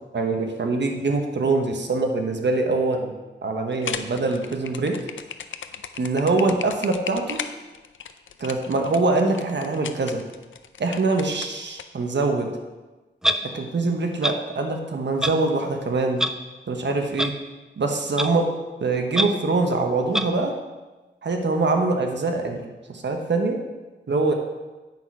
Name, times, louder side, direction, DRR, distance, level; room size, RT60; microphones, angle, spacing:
voice 1, 0.1-3.1 3.4-5.0 6.0-7.4 8.4-10.2 10.8-12.5 13.4-16.2 16.7-17.4 17.8-18.5 18.8-20.6 21.2-23.6 24.1-24.3, right 3 dB, 65° right, 3 dB, 1.2 m, -24 dB
sound 1, 3.7-11.8, left 7 dB, 80° left, 0.5 m, -36 dB
Clock, 13.2-13.4 14.2-14.3 15.2-15.3 16.2-16.3 17.2-17.3 18.2-18.3 19.1-19.2 20.1-20.2, equal, 5° right, 0.5 m, -22 dB
9.0 x 5.9 x 4.7 m, 1.2 s
wide cardioid pair, 75°, 20 cm